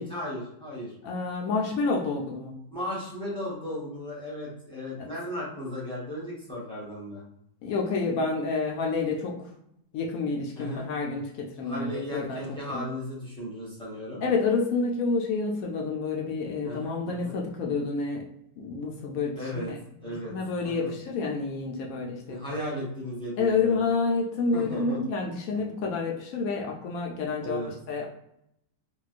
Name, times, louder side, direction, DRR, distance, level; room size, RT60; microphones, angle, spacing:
voice 1, 0.0-0.9 2.7-7.2 10.6-10.9 11.6-14.2 16.6-17.4 19.4-19.7 20.0-20.3 20.6-21.0 22.3-23.8 24.5-25.0 25.5-25.7 27.4-27.7, equal, 5° left, -7 dB, 0.7 m, -35 dB
voice 2, 1.0-2.5 5.0-5.1 7.6-9.5 9.9-12.4 12.7-12.9 14.2-18.2 18.6-22.4 23.4-27.6 27.9-28.1, left 4 dB, 70° left, 0 dB, 0.8 m, -29 dB
3.8 x 2.3 x 2.4 m, 0.77 s
omnidirectional pair, 1.9 m